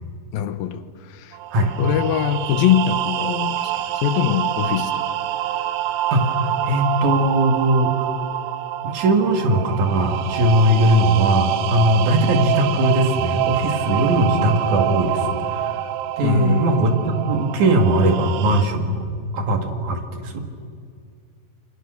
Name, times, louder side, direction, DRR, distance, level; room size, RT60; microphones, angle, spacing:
voice 1, 0.3-1.4 1.8-5.0 16.2-16.7, left 10 dB, 85° left, 2.9 m, -22 dB
sound 1, 1.3-18.6, right 11 dB, 85° right, 2.6 m, -26 dB
voice 2, 6.7-8.1 8.8-15.7 16.2-19.0 19.3-20.4, right 1 dB, 60° right, 3.5 m, -19 dB
29.0 x 24.0 x 6.6 m
omnidirectional pair, 4.1 m